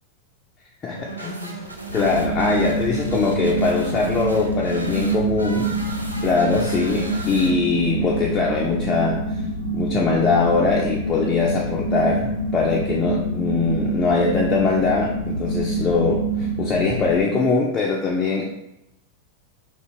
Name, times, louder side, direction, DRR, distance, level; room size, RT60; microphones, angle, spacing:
voice 1, 0.8-1.6 1.9-5.7 6.2-9.2 9.7-18.5, left 4 dB, 25° left, -2 dB, 0.3 m, -22 dB
sound 1, 0.9-7.9, right 2 dB, 85° right, 0.3 m, -37 dB
sound 2, 1.9-17.1, right 2 dB, 85° left, 0.5 m, -26 dB
2.3 x 2.2 x 2.8 m, 0.86 s
figure-of-eight pair, 90°, 0 cm